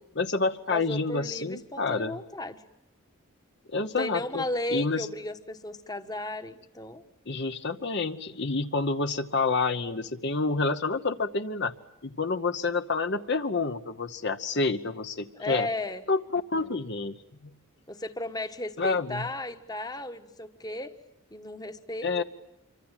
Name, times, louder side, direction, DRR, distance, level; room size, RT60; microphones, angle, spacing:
voice 1, 0.1-2.1 3.7-4.4 4.7-5.1 7.3-11.7 12.0-15.7 16.1-17.1 18.8-19.3 22.0-22.2, left 3 dB, 55° left, 9 dB, 1.0 m, -28 dB
voice 2, 0.7-2.6 3.8-7.0 15.4-16.0 17.9-20.9 21.3-22.2, left 1 dB, 20° left, 9 dB, 1.2 m, -35 dB
26.5 x 24.5 x 9.0 m, 0.82 s
head